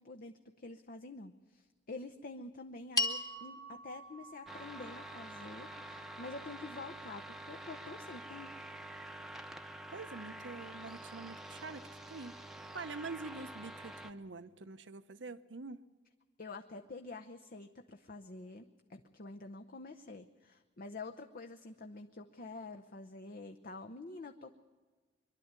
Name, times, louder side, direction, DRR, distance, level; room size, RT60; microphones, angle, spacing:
voice 1, 0.0-8.5 16.4-24.6, left 3 dB, 50° left, 6 dB, 0.8 m, -48 dB
sound 1, 3.0-7.4, left 2 dB, 20° left, 1.4 m, -41 dB
sound 2, 4.5-14.1, right 1 dB, ahead, 0.8 m, -48 dB
voice 2, 9.9-15.8, right 3 dB, 75° right, 12 dB, 0.9 m, -46 dB
23.0 x 12.0 x 9.6 m, 1.4 s
head